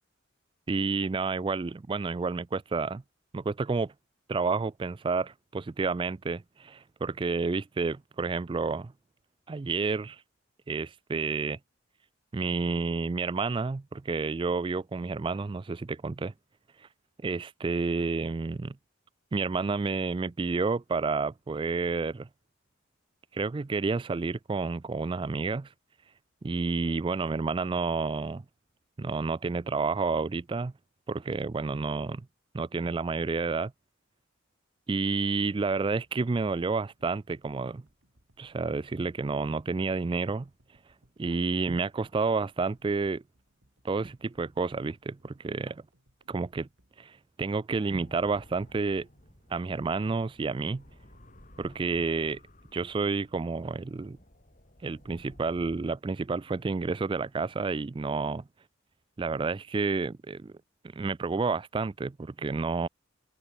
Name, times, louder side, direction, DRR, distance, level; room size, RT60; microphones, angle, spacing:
voice 1, 0.7-3.0 3.3-3.9 4.3-8.9 9.5-10.2 10.7-11.6 12.3-16.3 16.8-16.9 17.2-18.8 19.3-22.3 23.3-25.7 26.4-28.4 29.0-30.7 31.1-32.2 32.5-33.7 34.9-37.8 38.4-40.5 41.2-43.2 43.8-45.8 46.3-46.7 47.0-49.1 49.5-50.8 51.6-52.4 52.7-54.2 54.8-58.4 59.2-60.5 60.9-62.9, right 4 dB, 25° right, 0.3 m, -30 dB
sound 1, 36.7-48.1 48.6-48.7, right 1 dB, 65° right, 4.7 m, -69 dB
A post-apocalyptic Breeze, 48.0-55.8, left 1 dB, 40° left, 6.0 m, -56 dB
open air
head